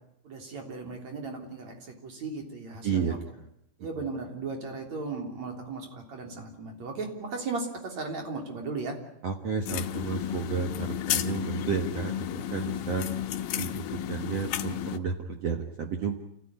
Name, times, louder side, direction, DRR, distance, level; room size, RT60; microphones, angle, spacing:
voice 1, 0.2-3.2 3.8-8.9, right 3 dB, 40° right, 3 dB, 4.3 m, -36 dB
voice 2, 2.8-3.5 9.2-13.0 13.6-16.2, right 6 dB, 70° right, 4 dB, 1.5 m, -32 dB
sound 1, 9.7-15.0, left 11 dB, 70° left, 2.1 m, -32 dB
28.5 x 15.5 x 9.7 m, 0.78 s
omnidirectional pair, 5.2 m